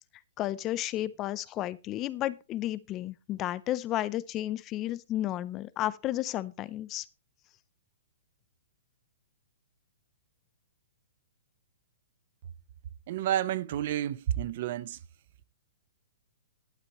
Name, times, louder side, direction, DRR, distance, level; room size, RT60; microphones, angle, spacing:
voice 1, 0.4-7.1, left 14 dB, 25° left, 0.5 m, -32 dB
voice 2, 13.1-15.0, right 11 dB, 45° right, 0.8 m, -30 dB
12.0 x 11.5 x 3.0 m
hypercardioid pair, 160°, 0 cm